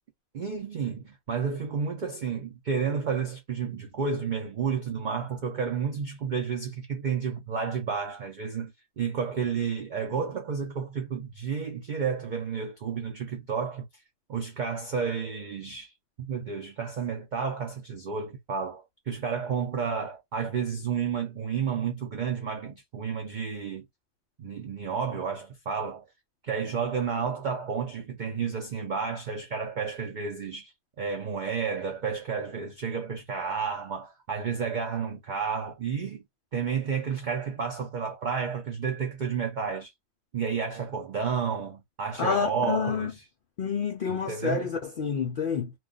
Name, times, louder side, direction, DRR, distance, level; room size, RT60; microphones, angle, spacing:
voice 1, 0.3-14.0 14.3-23.9 24.4-26.0 26.4-36.2 36.5-39.9 40.3-43.2 44.1-44.7, right 6 dB, 75° right, 0.4 m, -31 dB
voice 2, 42.2-43.1 43.6-45.7, left 6 dB, 80° left, 0.4 m, -28 dB
2.3 x 2.2 x 3.7 m
omnidirectional pair, 1.5 m